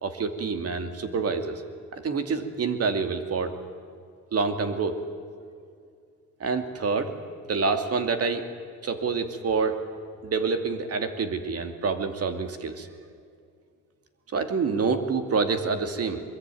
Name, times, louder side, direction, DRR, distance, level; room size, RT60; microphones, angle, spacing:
voice 1, 0.0-1.6 1.9-3.6 4.3-5.0 6.4-7.1 7.5-8.5 8.8-9.8 10.2-12.9 14.3-16.2, right 4 dB, 55° right, 8 dB, 2.7 m, -27 dB
23.0 x 22.0 x 9.3 m, 2.3 s
cardioid pair, 90°, 30 cm